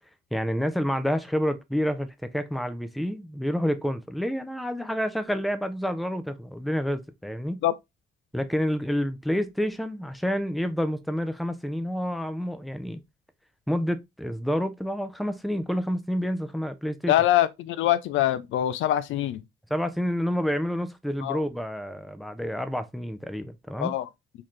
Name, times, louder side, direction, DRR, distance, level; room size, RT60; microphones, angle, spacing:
voice 1, 0.3-7.6 8.3-13.0 13.7-17.1 19.7-24.0, equal, ahead, 0.5 m, -28 dB
voice 2, 17.1-19.4 21.2-21.4 23.8-24.1, left 13 dB, 75° left, 0.4 m, -24 dB
3.9 x 2.7 x 3.0 m
cardioid pair, 90°, 20 cm